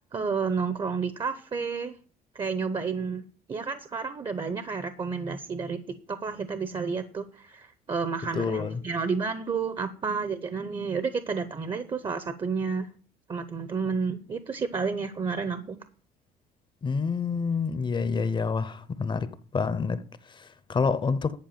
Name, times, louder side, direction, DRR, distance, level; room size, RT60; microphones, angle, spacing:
voice 1, 0.1-2.0 2.3-3.2 3.5-5.8 6.1-12.9 13.3-15.8, right 5 dB, 30° right, 0.8 m, -31 dB
voice 2, 8.3-8.8 16.8-21.3, left 5 dB, 30° left, 0.7 m, -28 dB
10.5 x 4.7 x 7.4 m
cardioid pair, 110°, 17 cm